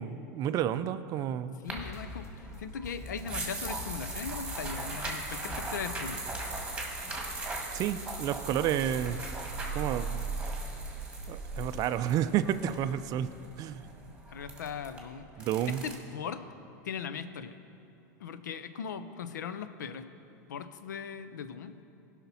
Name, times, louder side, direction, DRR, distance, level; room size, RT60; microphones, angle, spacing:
voice 1, 0.0-1.6 7.7-9.2 9.7-10.2 11.3-13.3 13.6-13.8 15.4-15.8, right 10 dB, 40° right, 12 dB, 0.4 m, -30 dB
voice 2, 1.6-6.2 14.3-15.3 15.7-16.4 16.8-17.6 18.2-20.1 20.5-21.7, left 7 dB, 90° left, 12 dB, 0.5 m, -39 dB
sound 1, 1.7-6.9, left 2 dB, 30° left, 1.1 m, -45 dB
sound 2, 1.7-15.9, right 3 dB, 10° right, 1.7 m, -38 dB
15.5 x 5.8 x 4.1 m, 2.7 s
hypercardioid pair, 110°, 10 cm